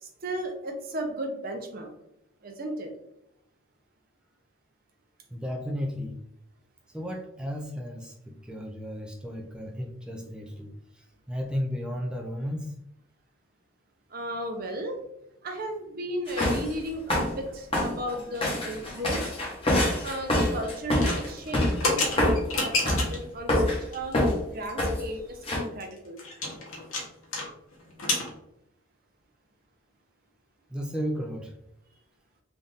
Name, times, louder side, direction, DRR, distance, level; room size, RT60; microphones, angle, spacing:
voice 1, 0.0-1.9 2.4-2.9 14.1-15.0 15.4-19.3 20.0-24.1 24.5-26.2, right 1 dB, 45° right, 3 dB, 0.6 m, -35 dB
voice 2, 5.3-6.2 6.9-12.7 30.7-31.5, equal, 5° right, 2 dB, 0.4 m, -34 dB
sound 1, 16.3-16.7 17.1-17.4 17.7-21.8 22.2-22.4 22.8-23.1 23.5-23.9 24.1-24.4 24.8-25.0 25.4-25.6, left 1 dB, 25° left, 1.0 m, -25 dB
sound 2, 20.9-23.3 23.9-24.3 24.6-24.7 25.0-25.1 25.5-27.5 27.7-28.3, left 2 dB, 80° left, 1.1 m, -29 dB
3.5 x 2.5 x 3.9 m, 0.80 s
head